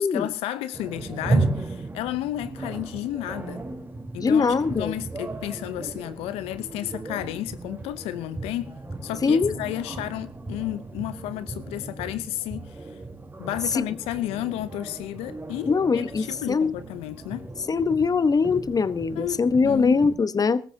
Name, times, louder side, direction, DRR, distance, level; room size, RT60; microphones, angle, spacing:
voice 1, 0.0-3.6 4.1-8.8 9.0-12.9 13.4-17.5 19.2-20.0, left 14 dB, 85° left, 0.7 m, -32 dB
sound 1, 0.7-20.2, right 3 dB, 20° right, 3.8 m, -35 dB
voice 2, 4.2-4.9 9.2-9.5 13.7-13.9 15.7-16.7 17.7-20.6, left 5 dB, 40° left, 1.0 m, -22 dB
21.5 x 14.0 x 2.8 m
supercardioid pair, 55°, 10 cm